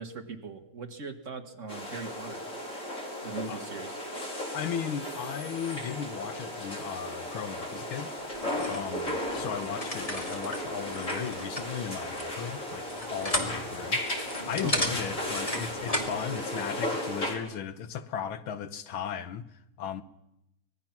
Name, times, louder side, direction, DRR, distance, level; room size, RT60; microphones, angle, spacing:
voice 1, 0.0-2.4 3.2-4.0 14.6-14.9, right 4 dB, 40° right, 1.7 m, -40 dB
sound 1, 1.7-17.4, left 1 dB, 35° left, 4.3 m, -35 dB
voice 2, 4.5-8.1 8.7-19.5 19.8-20.0, left 8 dB, 75° left, 1.8 m, -36 dB
sound 2, 8.3-16.2, left 1 dB, 15° left, 2.4 m, -35 dB
25.0 x 19.0 x 5.9 m
omnidirectional pair, 2.3 m